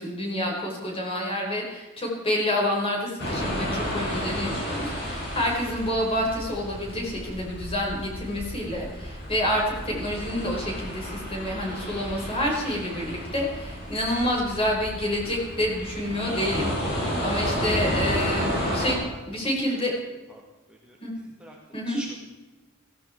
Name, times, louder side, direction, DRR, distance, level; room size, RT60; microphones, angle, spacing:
voice 1, 0.0-19.0 19.3-19.9 21.0-21.1 21.7-22.0, left 1 dB, 25° left, -1 dB, 4.8 m, -28 dB
sound 1, 3.2-18.9, equal, 50° left, 5.8 m, -31 dB
voice 2, 18.7-20.0 20.3-20.4 20.8-21.6 21.9-22.3, right 1 dB, 5° right, -2 dB, 1.7 m, -46 dB
17.0 x 15.5 x 4.5 m, 1.2 s
head